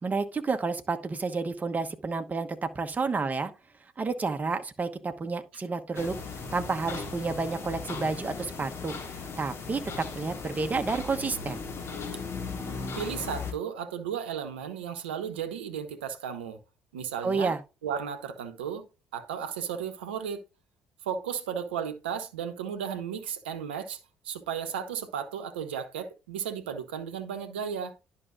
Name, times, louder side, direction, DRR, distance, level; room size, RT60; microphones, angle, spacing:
voice 1, 0.0-3.5 4.0-6.1 6.5-11.6 17.2-17.6, right 4 dB, 30° right, 1.0 m, -30 dB
sound 1, 6.0-13.5, left 4 dB, 50° left, 2.1 m, -37 dB
voice 2, 13.0-16.6 16.9-17.5 17.8-18.9 19.1-20.4 21.0-24.0 24.2-28.0, right 8 dB, 85° right, 0.8 m, -34 dB
11.0 x 5.6 x 2.6 m
hypercardioid pair, 50°, 6 cm